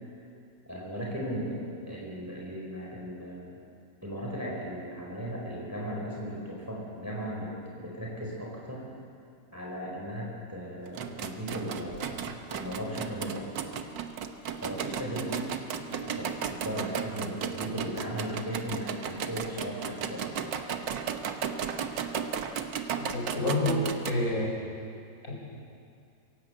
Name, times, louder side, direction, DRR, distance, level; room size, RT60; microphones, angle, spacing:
voice 1, 0.6-3.6 4.0-8.8 9.5-13.5 14.6-15.4 15.9-20.4 23.2-23.5, equal, 10° right, -3 dB, 4.5 m, -37 dB
sound 1, 10.9-24.1, right 7 dB, 75° right, 1.7 m, -35 dB
voice 2, 23.1-23.8 24.1-24.5 25.3-25.4, left 2 dB, 50° left, -2 dB, 5.3 m, -28 dB
25.5 x 16.5 x 7.8 m, 2.4 s
omnidirectional pair, 2.0 m